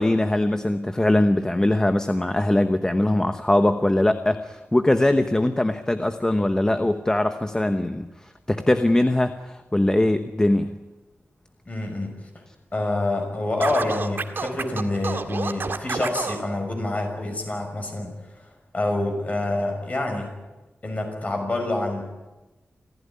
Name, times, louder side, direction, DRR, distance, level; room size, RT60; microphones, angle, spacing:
voice 1, 0.0-10.8, left 1 dB, 15° left, 8 dB, 0.9 m, -21 dB
voice 2, 11.7-12.4 12.7-18.1 18.7-20.3 20.8-22.0, left 2 dB, 35° left, 3 dB, 6.0 m, -27 dB
Scratching (performance technique), 13.6-16.4, right 4 dB, 55° right, 1.8 m, -29 dB
26.5 x 15.5 x 9.8 m, 1.1 s
wide cardioid pair, 135°, 4 cm